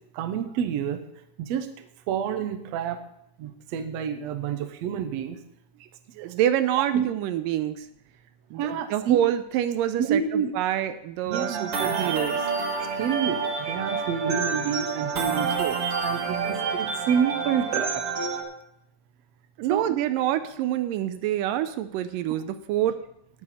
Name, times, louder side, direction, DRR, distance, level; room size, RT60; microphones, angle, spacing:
voice 1, 0.1-1.0 1.4-3.0 3.4-5.4 5.8-5.9 6.1-6.3 6.9-7.0 8.5-9.2 10.0-10.5 11.3-12.1 13.0-18.2 19.7-19.9, right 8 dB, 70° right, 8 dB, 1.7 m, -29 dB
voice 2, 6.2-7.9 8.5-12.4 19.6-23.0, right 11 dB, 85° right, 11 dB, 2.2 m, -26 dB
sound 1, 11.3-18.4, right 5 dB, 50° right, 2.3 m, -28 dB
19.0 x 6.7 x 4.2 m, 0.77 s
omnidirectional pair, 3.9 m